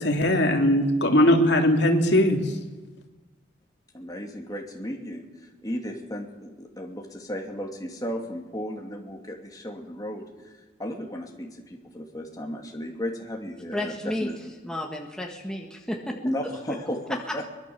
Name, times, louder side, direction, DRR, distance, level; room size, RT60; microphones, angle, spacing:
voice 1, 0.0-2.4, left 1 dB, 65° left, 3 dB, 2.9 m, -20 dB
voice 2, 3.9-5.2 5.6-10.5 10.8-14.4 16.1-17.4, equal, 20° left, 1 dB, 2.7 m, -34 dB
voice 3, 13.7-16.8 17.1-17.5, left 1 dB, 5° left, 1 dB, 1.6 m, -33 dB
23.0 x 20.5 x 7.2 m, 1.2 s
head